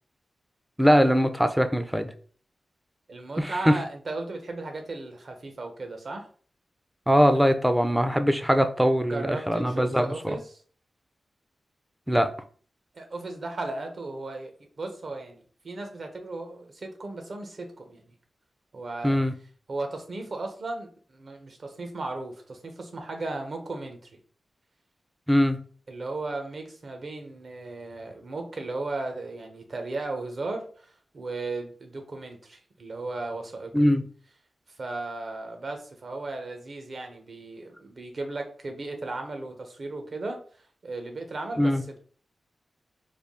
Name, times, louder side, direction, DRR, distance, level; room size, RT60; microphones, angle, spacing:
voice 1, 0.8-2.1 3.4-3.8 7.1-10.4 12.1-12.3 19.0-19.3 25.3-25.6 33.7-34.0 41.6-41.8, equal, 5° right, 0.4 m, -22 dB
voice 2, 3.1-6.3 9.1-10.6 12.9-18.0 18.7-19.2 19.7-24.1 25.9-33.7 34.8-40.4 40.8-41.7, right 2 dB, 55° right, 0.8 m, -36 dB
3.4 x 2.3 x 3.6 m
wide cardioid pair, 95°, 0 cm